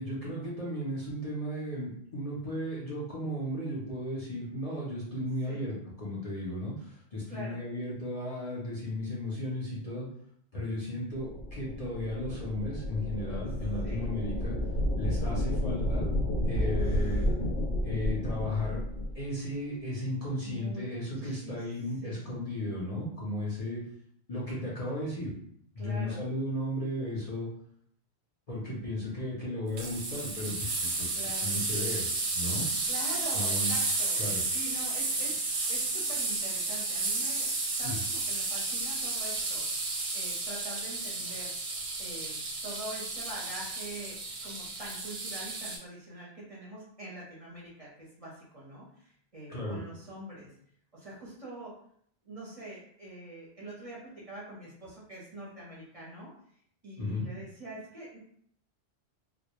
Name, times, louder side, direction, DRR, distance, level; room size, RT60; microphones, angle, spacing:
voice 1, 0.0-10.1 10.5-14.5 15.0-16.1 16.5-17.3 17.8-18.8 19.1-23.8 24.3-25.3 25.7-27.5 28.5-31.1 31.4-32.1 32.3-32.6 33.3-33.7 34.2-34.4 37.8-38.0 49.5-49.8 57.0-57.2, left 1 dB, 45° left, -6 dB, 0.6 m, -35 dB
voice 2, 7.3-7.6 13.8-14.1 16.6-17.3 20.4-20.9 21.2-21.7 22.0-22.4 25.8-26.2 31.1-31.5 32.8-37.5 37.8-41.6 42.0-50.5 50.9-51.7 52.2-56.3 56.8-58.2, right 1 dB, 40° right, -6 dB, 0.6 m, -45 dB
sound 1, 11.1-19.2, left 1 dB, 80° left, 0.8 m, -31 dB
sound 2, 29.8-45.8, right 3 dB, 90° right, 0.9 m, -32 dB
2.2 x 2.1 x 2.9 m, 0.65 s
omnidirectional pair, 1.1 m